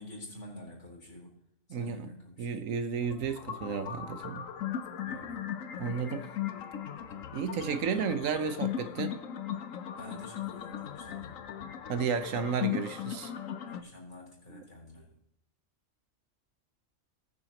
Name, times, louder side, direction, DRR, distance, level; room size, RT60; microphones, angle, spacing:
voice 1, 0.0-1.4 1.7-2.5 5.0-6.0 8.0-8.1 9.9-11.4 13.6-15.2, left 1 dB, 65° left, 4.2 m, -48 dB
voice 2, 1.7-2.1 2.4-4.5 5.8-6.3 7.3-9.2 11.9-13.3 14.5-14.6, right 6 dB, 80° right, 1.3 m, -32 dB
sound 1, 3.0-13.8, left 10 dB, 85° left, 1.2 m, -38 dB
19.5 x 6.8 x 2.9 m
omnidirectional pair, 1.4 m